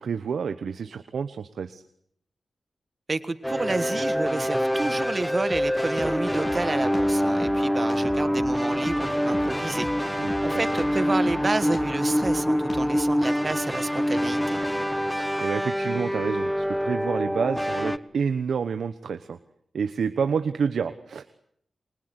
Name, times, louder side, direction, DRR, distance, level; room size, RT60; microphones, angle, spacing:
voice 1, 0.0-1.8 10.2-10.6 15.4-19.4 19.7-21.3, right 6 dB, 90° right, 10 dB, 1.1 m, -29 dB
voice 2, 3.1-9.9 10.4-14.6, right 3 dB, 40° right, 12 dB, 1.5 m, -30 dB
sound 1, 3.4-18.0, equal, 5° left, 1.1 m, -25 dB
Drum kit, 5.5-13.2, left 2 dB, 35° left, 2.9 m, -41 dB
29.0 x 25.0 x 8.2 m, 0.70 s
cardioid pair, 75°, 0 cm